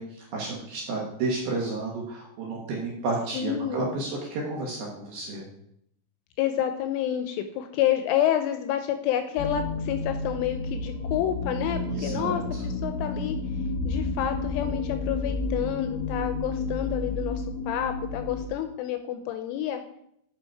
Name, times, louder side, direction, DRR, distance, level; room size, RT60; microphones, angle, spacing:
voice 1, 0.0-5.5 11.9-12.4, right 3 dB, 65° right, -3 dB, 2.6 m, -31 dB
voice 2, 3.3-3.9 6.4-13.4 13.9-19.8, left 10 dB, 85° left, 7 dB, 2.9 m, -29 dB
sound 1, 9.4-18.5, left 3 dB, 60° left, 1.7 m, -31 dB
8.9 x 5.9 x 4.6 m, 0.73 s
omnidirectional pair, 6.0 m